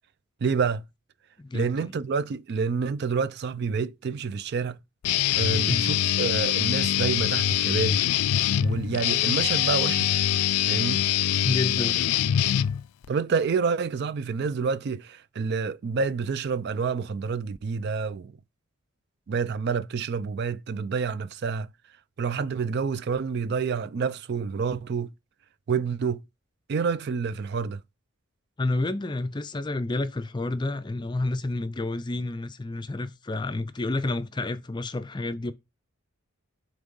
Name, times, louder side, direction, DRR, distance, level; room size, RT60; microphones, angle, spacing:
voice 1, 0.4-0.8 1.5-4.8 5.4-8.0 8.6-10.2 10.6-11.0 13.1-18.3 19.3-21.7 22.2-25.1 25.7-26.2 26.7-27.8, right 5 dB, 50° right, 0.3 m, -28 dB
voice 2, 1.4-1.9 5.5-5.9 11.4-12.1 28.6-35.5, left 2 dB, 20° left, 0.4 m, -30 dB
Guitar, 5.0-13.1, left 11 dB, 90° left, 0.4 m, -24 dB
7.3 x 3.4 x 5.2 m
head